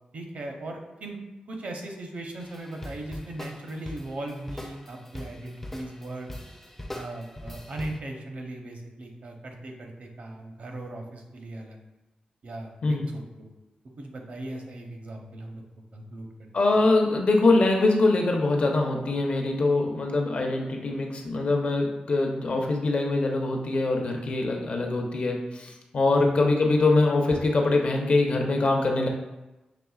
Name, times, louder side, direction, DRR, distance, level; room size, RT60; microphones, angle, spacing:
voice 1, 0.1-1.2 1.5-6.3 6.9-11.8 12.4-13.5 14.0-15.6 15.9-16.5 26.1-26.3, right 1 dB, 65° right, 2 dB, 0.7 m, -38 dB
sound 1, 2.4-8.0, left 1 dB, 10° left, 0.4 m, -42 dB
voice 2, 16.5-29.1, left 2 dB, 50° left, 1 dB, 0.6 m, -23 dB
5.9 x 3.1 x 2.3 m, 1.0 s
wide cardioid pair, 150°, 3 cm